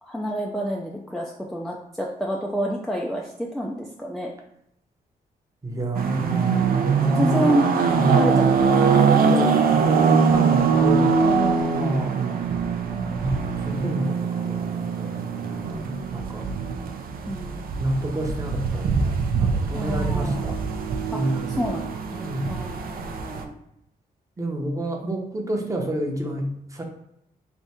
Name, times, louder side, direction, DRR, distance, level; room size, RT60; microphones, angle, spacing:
voice 1, 0.0-4.3 7.0-7.7 8.0-9.2 11.2-11.8 17.3-17.7 19.7-20.4 21.1-21.2 21.6-23.5, equal, ahead, -2 dB, 0.4 m, -28 dB
voice 2, 5.6-7.6 8.0-8.5 9.2-11.3 11.7-12.2 13.2-16.5 17.8-20.6 21.1-21.8 22.2-22.6 24.4-26.8, right 1 dB, 20° right, 1 dB, 0.8 m, -29 dB
sound 1, 5.9-23.4, right 5 dB, 65° right, 0.5 m, -23 dB
3.5 x 2.5 x 4.2 m, 0.77 s
cardioid pair, 105°, 16 cm